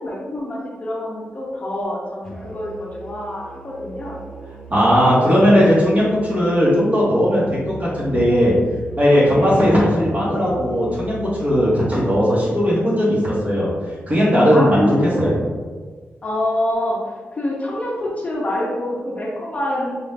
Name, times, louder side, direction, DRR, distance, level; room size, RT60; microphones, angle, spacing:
voice 1, 0.0-4.2 4.9-5.5 5.9-6.3 9.2-9.8 14.5-15.4 16.2-20.0, left 1 dB, 35° left, -3 dB, 0.6 m, -26 dB
Musical instrument, 2.2-12.1, right 2 dB, 10° left, 0.9 m, -39 dB
voice 2, 4.7-8.6 9.0-11.1 11.4-13.7 14.1-14.8 15.2-15.4, equal, 35° right, -7 dB, 1.4 m, -17 dB
4.0 x 2.6 x 3.3 m, 1.4 s
wide cardioid pair, 160°, 4 cm